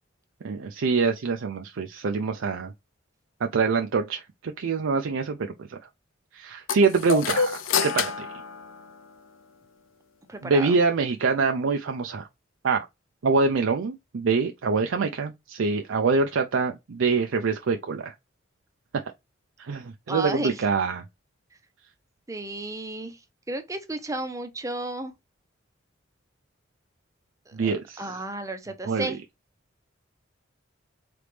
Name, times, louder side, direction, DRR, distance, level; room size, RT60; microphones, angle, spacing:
voice 1, 0.4-2.7 3.4-5.8 6.3-8.3 10.4-12.3 12.6-12.9 13.2-18.1 19.6-21.0 27.5-28.0 28.9-29.1, right 4 dB, 75° right, 0.5 m, -25 dB
sound 1, 6.7-9.4, left 6 dB, 85° left, 0.6 m, -28 dB
voice 2, 10.3-10.7 20.1-20.6 22.3-23.2 23.5-25.1 27.5-29.2, right 2 dB, 15° right, 0.6 m, -33 dB
3.9 x 3.3 x 3.3 m
head